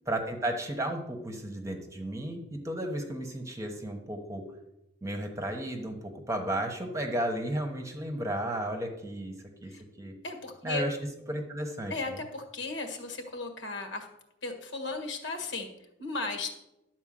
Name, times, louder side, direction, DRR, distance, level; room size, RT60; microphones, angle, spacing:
voice 1, 0.1-4.4 5.0-10.1 10.6-11.0 11.3-11.9, right 1 dB, 15° right, 4 dB, 1.1 m, -33 dB
voice 2, 10.2-10.9 11.9-14.1 14.4-16.5, left 3 dB, 70° left, 4 dB, 1.6 m, -36 dB
11.5 x 4.5 x 7.6 m, 0.89 s
head